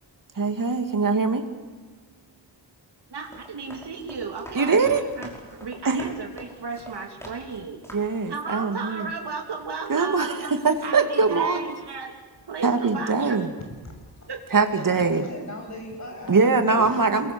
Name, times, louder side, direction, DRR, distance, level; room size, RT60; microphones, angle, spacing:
voice 1, 0.4-1.4 4.5-5.0 5.8-6.1 7.9-9.1 9.9-11.7 12.6-13.5 14.5-15.3 16.3-17.3, right 4 dB, 50° right, 6 dB, 2.4 m, -22 dB
sound 1, 3.1-7.6 7.8-8.2, equal, 5° left, 5.5 m, -44 dB
voice 2, 3.1-7.8 8.3-10.4 10.8-12.1 12.5-13.4 14.3-14.4, right 4 dB, 75° right, 3 dB, 3.0 m, -34 dB
voice 3, 14.7-16.9, left 1 dB, 40° left, 2 dB, 6.7 m, -38 dB
27.5 x 22.5 x 7.1 m, 1.4 s
wide cardioid pair, 130°, 40 cm